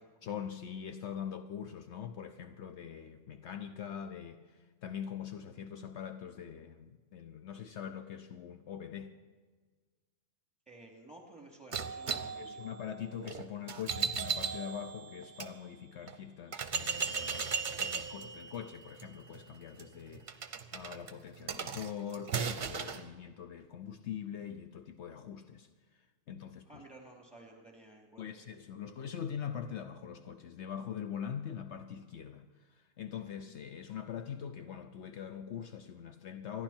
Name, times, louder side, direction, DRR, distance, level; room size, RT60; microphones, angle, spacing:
voice 1, 0.2-9.1 12.4-25.7 26.3-26.8 28.2-36.6, left 8 dB, 70° left, 1.0 m, -43 dB
voice 2, 10.7-12.7 26.7-28.4, right 2 dB, 5° right, 3.2 m, -54 dB
sound 1, 11.7-15.5 16.1-16.2 16.5-23.0, right 6 dB, 45° right, 0.9 m, -37 dB
26.0 x 10.5 x 4.4 m
omnidirectional pair, 1.3 m